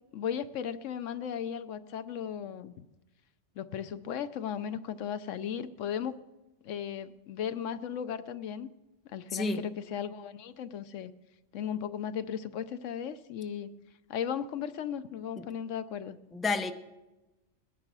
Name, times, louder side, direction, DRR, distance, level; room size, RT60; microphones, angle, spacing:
voice 1, 0.1-2.8 3.6-6.2 6.6-8.7 9.0-11.1 11.5-13.7 14.1-16.2, left 8 dB, 80° left, 1.1 m, -36 dB
voice 2, 9.3-9.6 15.4-15.5 16.3-16.7, left 3 dB, ahead, 0.4 m, -30 dB
20.0 x 10.5 x 6.2 m
omnidirectional pair, 1.3 m